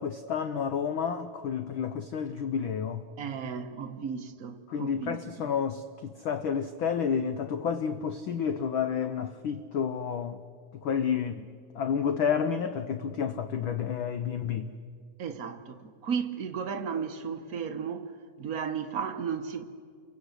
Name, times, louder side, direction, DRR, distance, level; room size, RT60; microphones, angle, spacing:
voice 1, 0.0-3.0 4.7-10.4 10.8-11.5 11.7-14.7, left 7 dB, 90° left, 1.1 m, -30 dB
voice 2, 3.2-5.5 15.2-18.1 18.4-19.6, right 6 dB, 60° right, 0.9 m, -34 dB
29.5 x 23.5 x 8.2 m
omnidirectional pair, 3.3 m